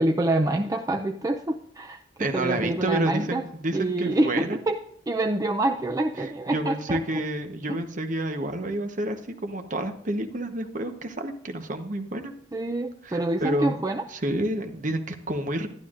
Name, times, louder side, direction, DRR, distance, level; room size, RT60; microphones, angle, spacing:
voice 1, 0.0-3.5 3.7-4.8 5.1-7.0 7.7-7.8 12.5-14.0, right 2 dB, 20° right, 4 dB, 0.4 m, -26 dB
voice 2, 2.2-4.6 6.2-12.3 13.0-13.8 14.1-15.7, right 1 dB, 45° right, 6 dB, 1.0 m, -29 dB
11.5 x 11.5 x 2.5 m, 0.67 s
head